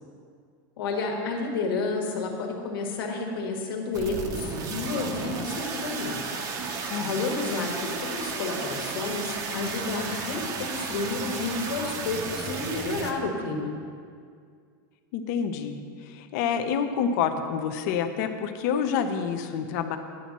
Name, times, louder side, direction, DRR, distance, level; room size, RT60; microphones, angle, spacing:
voice 1, 0.8-6.2 7.0-13.7, left 3 dB, 85° left, 1 dB, 1.6 m, -30 dB
sound 1, 3.9-13.1, right 4 dB, 30° right, 0.7 m, -33 dB
voice 2, 15.1-15.8 16.1-20.0, left 7 dB, 50° left, 7 dB, 0.7 m, -28 dB
10.0 x 4.1 x 7.4 m, 2.2 s
supercardioid pair, 165°, 12 cm